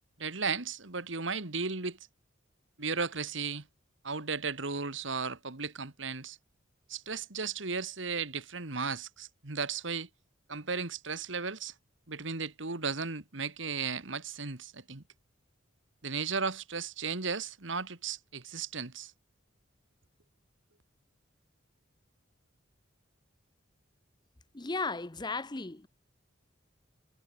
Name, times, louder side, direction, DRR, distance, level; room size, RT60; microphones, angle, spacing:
voice 1, 0.2-2.0 2.8-3.7 4.0-6.4 6.9-10.1 10.5-11.7 12.1-15.0 16.0-19.1, right 5 dB, 70° right, 2.1 m, -35 dB
voice 2, 24.5-25.9, left 3 dB, 20° left, 0.9 m, -35 dB
head